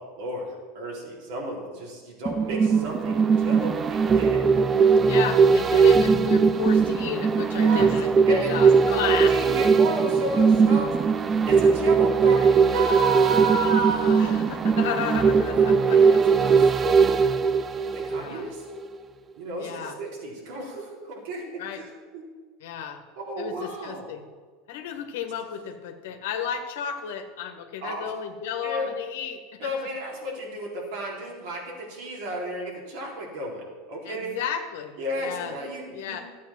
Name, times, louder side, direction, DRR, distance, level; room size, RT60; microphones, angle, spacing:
voice 1, 0.0-4.5 7.6-7.9 8.3-14.4 15.2-17.4 17.9-18.6 19.4-22.2 23.1-24.1 27.8-28.1 28.6-28.9 29.6-34.3 35.0-36.2, right 2 dB, 70° right, -2 dB, 4.1 m, -32 dB
sound 1, 2.2-18.5 18.8-18.9, right 5 dB, 30° right, 0.7 m, -20 dB
voice 2, 5.1-9.3 13.4-16.0 18.1-18.5 19.6-20.0 21.6-21.8 22.6-23.0 23.4-24.3 24.7-29.9 34.0-35.5 35.9-36.2, left 8 dB, 75° left, 6 dB, 1.5 m, -33 dB
13.0 x 8.4 x 6.1 m, 1.5 s
hypercardioid pair, 100°, 0 cm